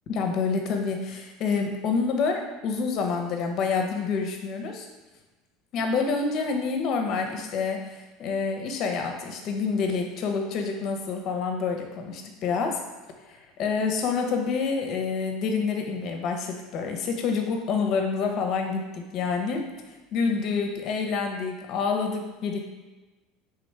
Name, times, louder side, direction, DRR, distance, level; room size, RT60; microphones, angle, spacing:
voice 1, 0.1-4.9 5.7-12.8 13.3-19.6 20.1-22.6, left 5 dB, 50° left, 3 dB, 0.7 m, -27 dB
3.4 x 3.0 x 4.6 m, 1.2 s
supercardioid pair, 110°, 0 cm